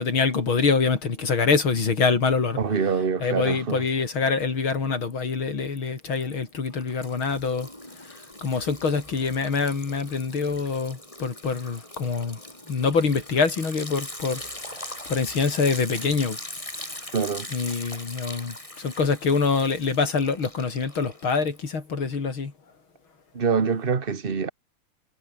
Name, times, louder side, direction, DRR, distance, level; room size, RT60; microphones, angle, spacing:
voice 1, 0.0-2.6 3.2-7.7 7.9-12.4 12.7-16.4 16.8-17.0 17.5-22.5, left 4 dB, 75° left, 4.1 m, -25 dB
voice 2, 2.6-3.8 17.1-17.5 23.3-24.5, right 5 dB, 30° right, 1.6 m, -25 dB
Liquid, 5.1-5.3 5.7-21.8, left 1 dB, 15° left, 5.4 m, -41 dB
omnidirectional pair, 2.3 m